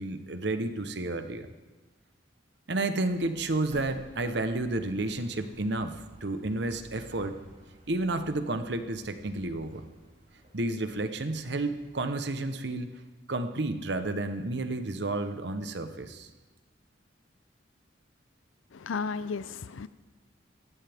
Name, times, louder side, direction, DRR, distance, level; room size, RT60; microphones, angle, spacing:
voice 1, 0.0-1.5 2.7-7.4 7.9-9.8 10.5-12.9 13.3-16.3, right 2 dB, 60° right, 8 dB, 1.0 m, -31 dB
sound 1, 3.1-12.2, equal, 45° right, 3.9 m, -54 dB
voice 2, 18.7-19.9, left 5 dB, 90° left, 15 dB, 0.5 m, -34 dB
18.0 x 15.0 x 3.6 m, 1.3 s
head